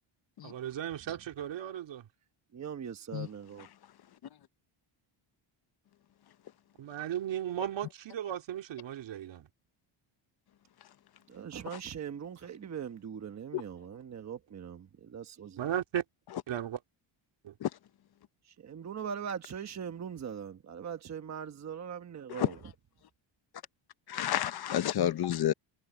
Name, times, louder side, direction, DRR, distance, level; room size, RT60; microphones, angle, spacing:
voice 1, 0.4-2.0 6.8-9.5 15.6-16.0 16.5-16.8 17.4-17.5, right 10 dB, 60° right, 2.5 m, -36 dB
voice 2, 2.5-3.7 11.3-15.6 18.6-22.5, right 8 dB, 35° right, 1.1 m, -41 dB
voice 3, 24.1-25.5, left 11 dB, 50° left, 0.9 m, -30 dB
cardioid pair, 160°, 50 cm